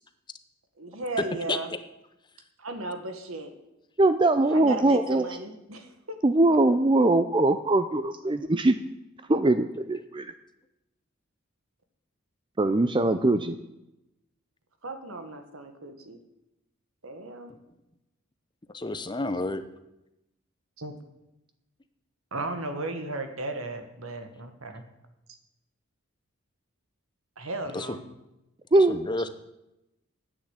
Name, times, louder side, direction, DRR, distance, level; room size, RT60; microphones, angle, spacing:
voice 1, 0.8-1.7 2.6-3.5 4.5-6.2 14.8-16.2 17.0-17.5 20.8-20.9 22.3-24.9 27.4-28.0, right 2 dB, 80° right, 7 dB, 1.7 m, -35 dB
voice 2, 4.0-5.2 6.2-8.8 9.3-10.3 12.6-13.6 28.7-29.0, right 2 dB, 25° right, 10 dB, 0.5 m, -22 dB
voice 3, 18.7-19.6 27.7-28.0 28.8-29.3, left 2 dB, 20° left, 10 dB, 0.7 m, -30 dB
10.0 x 8.9 x 8.2 m, 0.91 s
head